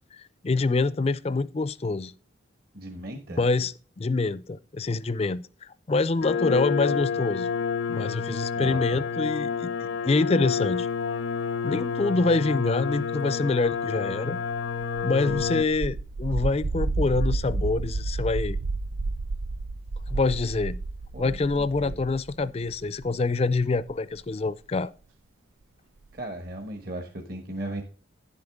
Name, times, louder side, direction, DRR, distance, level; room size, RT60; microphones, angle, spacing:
voice 1, 0.1-2.1 3.4-5.4 5.9-7.5 7.9-10.9 11.6-14.4 15.0-18.6 20.1-20.8 21.2-24.9, left 3 dB, 30° left, 0.4 m, -26 dB
voice 2, 2.7-3.4 8.6-9.0 15.3-15.4 21.1-22.0 26.1-27.8, right 1 dB, 50° right, 1.3 m, -37 dB
sound 1, 6.2-15.6, left 6 dB, 85° left, 0.7 m, -29 dB
sound 2, 13.7-13.8 14.7-23.2 23.6-24.2 26.1-26.2, right 3 dB, 90° right, 0.5 m, -31 dB
10.5 x 7.8 x 3.6 m
head